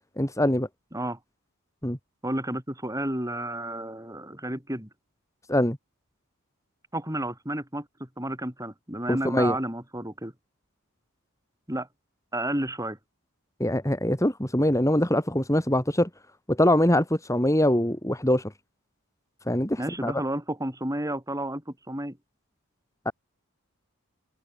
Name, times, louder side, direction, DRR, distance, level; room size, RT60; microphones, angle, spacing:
voice 1, 0.2-0.7 1.8-2.0 5.5-5.8 9.1-9.6 13.6-16.1 16.5-18.5 19.5-20.1 23.0-23.1, left 1 dB, 15° left, 4.5 m, -23 dB
voice 2, 2.2-4.9 6.9-10.3 11.7-11.9 12.3-13.0 19.8-22.2, right 1 dB, 15° right, 6.8 m, -31 dB
open air
head